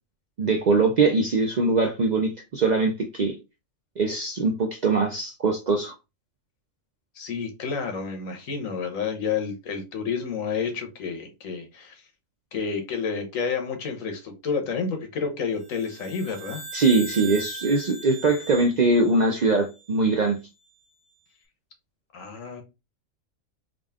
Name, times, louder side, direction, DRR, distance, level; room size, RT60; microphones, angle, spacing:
voice 1, 0.4-3.3 4.0-5.9 16.7-20.4, right 3 dB, 55° right, 3 dB, 0.5 m, -22 dB
voice 2, 7.1-12.0 12.5-16.6 22.1-22.6, left 5 dB, 85° left, 5 dB, 1.3 m, -30 dB
sound 1, 15.6-20.2, right 4 dB, 75° right, 1.2 m, -40 dB
3.7 x 2.4 x 3.4 m, 0.27 s
omnidirectional pair, 1.3 m